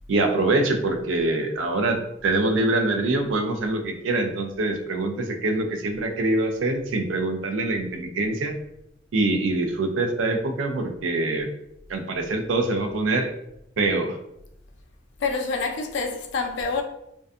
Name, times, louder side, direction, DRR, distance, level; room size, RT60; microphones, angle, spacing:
voice 1, 0.1-8.5 9.1-11.5 11.9-13.3 13.8-14.2, right 2 dB, 75° right, 0.4 m, -24 dB
voice 2, 15.2-16.8, left 4 dB, 65° left, 0.4 m, -27 dB
2.5 x 2.2 x 2.4 m
head